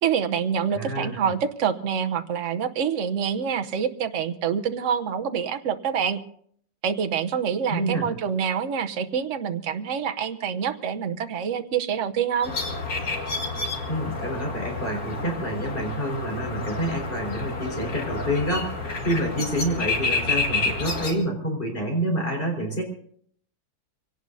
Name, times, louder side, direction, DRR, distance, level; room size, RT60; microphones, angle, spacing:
voice 1, 0.0-6.2 6.8-12.5, right 7 dB, 50° right, 9 dB, 1.0 m, -26 dB
voice 2, 0.7-1.2 7.7-8.1 13.9-18.7 19.0-22.8, right 1 dB, 25° left, 0 dB, 4.8 m, -27 dB
sound 1, 12.4-21.1, left 3 dB, 45° left, 2.5 m, -29 dB
25.5 x 18.0 x 2.7 m, 0.62 s
omnidirectional pair, 2.1 m